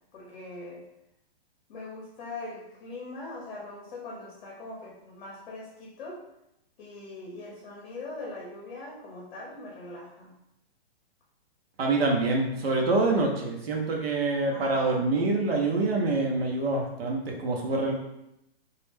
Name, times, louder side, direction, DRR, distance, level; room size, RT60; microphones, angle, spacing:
voice 1, 0.1-0.8 1.7-6.2 6.8-10.3 14.5-15.0, left 2 dB, 50° left, -3 dB, 0.7 m, -41 dB
voice 2, 11.8-17.9, right 3 dB, 75° right, 0 dB, 0.8 m, -26 dB
2.3 x 2.1 x 3.3 m, 0.85 s
hypercardioid pair, 150°, 31 cm